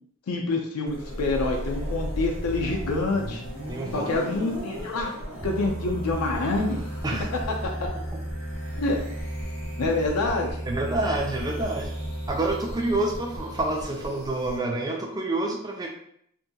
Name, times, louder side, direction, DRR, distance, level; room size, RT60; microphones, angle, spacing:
voice 1, 0.3-3.4 3.9-5.1 5.4-6.8 7.6-7.7 8.8-9.0 9.8-10.5, left 2 dB, 90° left, 1 dB, 0.5 m, -26 dB
sound 1, 0.9-14.6, equal, 70° right, 0.9 m, -34 dB
voice 2, 3.7-4.1 7.0-7.3 9.8-9.9 10.7-11.9 12.3-15.9, right 2 dB, 20° right, 1 dB, 0.3 m, -28 dB
2.8 x 2.6 x 2.2 m, 0.69 s
head